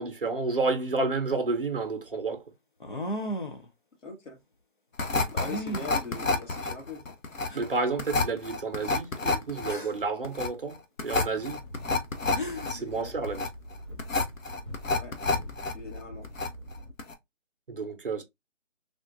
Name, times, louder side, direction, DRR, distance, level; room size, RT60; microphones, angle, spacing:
voice 1, 0.0-2.4 7.5-11.6 12.7-13.4 17.7-18.2, right 3 dB, 45° right, 0.7 m, -30 dB
sound 1, 1.3-1.4 2.8-3.7 5.5-5.9 6.9-7.0 7.5-7.6 9.7-10.1 12.0-12.1 12.3-12.8, equal, 40° left, 0.5 m, -34 dB
voice 2, 4.0-4.4 5.3-7.2 12.8-13.1 14.9-15.1 15.7-16.3, left 3 dB, 70° left, 1.7 m, -41 dB
sound 2, 5.0-15.7 16.0-16.7 17.0-17.1, left 3 dB, 85° left, 0.9 m, -29 dB
sound 3, 11.3-16.9, equal, 25° left, 0.9 m, -43 dB
3.5 x 2.4 x 2.5 m
figure-of-eight pair, 170°, 39 cm